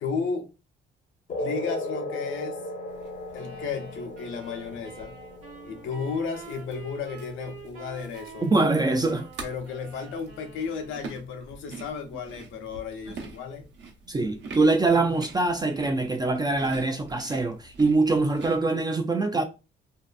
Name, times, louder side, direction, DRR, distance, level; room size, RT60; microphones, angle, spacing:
voice 1, 0.0-0.5 1.4-2.6 3.3-5.2 5.6-8.5 9.4-13.7, left 5 dB, 75° left, 0.7 m, -34 dB
sound 1, 1.3-8.3, left 1 dB, 40° left, 0.6 m, -37 dB
sound 2, 2.9-18.6, right 3 dB, 65° right, 0.9 m, -47 dB
sound 3, 3.3-11.3, right 5 dB, 90° right, 1.1 m, -47 dB
voice 2, 8.4-9.3 14.1-19.4, right 3 dB, 20° right, 0.4 m, -23 dB
2.7 x 2.4 x 2.2 m
cardioid pair, 90°, 20 cm